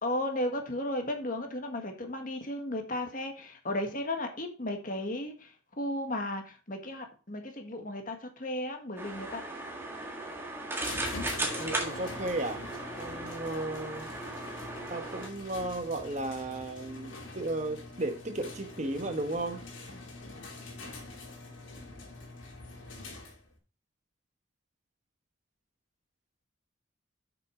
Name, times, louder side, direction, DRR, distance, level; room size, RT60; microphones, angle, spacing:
voice 1, 0.0-9.4, left 1 dB, 40° left, 1.6 m, -35 dB
sound 1, 9.0-15.3, right 2 dB, 10° right, 1.7 m, -37 dB
sound 2, 10.8-23.6, left 2 dB, 70° left, 2.7 m, -44 dB
voice 2, 11.6-12.6 13.0-14.1 14.9-19.6, right 2 dB, 35° right, 1.3 m, -34 dB
7.6 x 6.2 x 4.9 m
head